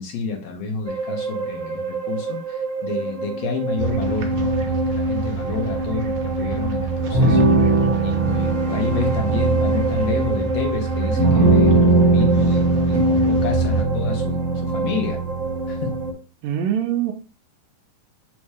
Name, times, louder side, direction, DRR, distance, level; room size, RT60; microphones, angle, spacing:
voice 1, 0.0-15.2 15.7-16.0, left 4 dB, 60° left, 3 dB, 1.9 m, -29 dB
sound 1, 0.9-16.1, right 2 dB, 45° right, 1.1 m, -21 dB
sound 2, 3.8-13.8, right 6 dB, 70° right, 1.5 m, -26 dB
voice 2, 16.4-17.1, right 10 dB, 85° right, 3 dB, 1.6 m, -23 dB
7.3 x 2.6 x 4.8 m, 0.35 s
omnidirectional pair, 3.8 m